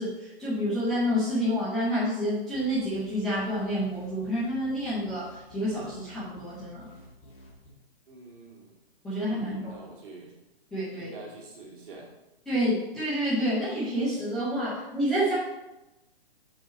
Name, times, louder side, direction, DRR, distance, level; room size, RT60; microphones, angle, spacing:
voice 1, 0.0-6.9 9.0-9.7 10.7-11.1 12.5-15.3, equal, ahead, -12 dB, 0.5 m, -28 dB
sound 1, 2.5-7.7, equal, 20° left, 1.8 m, -52 dB
voice 2, 8.1-8.8 9.1-10.3 11.0-12.1, right 3 dB, 55° right, -2 dB, 2.5 m, -46 dB
6.4 x 6.0 x 4.0 m, 0.99 s
hypercardioid pair, 160°, 31 cm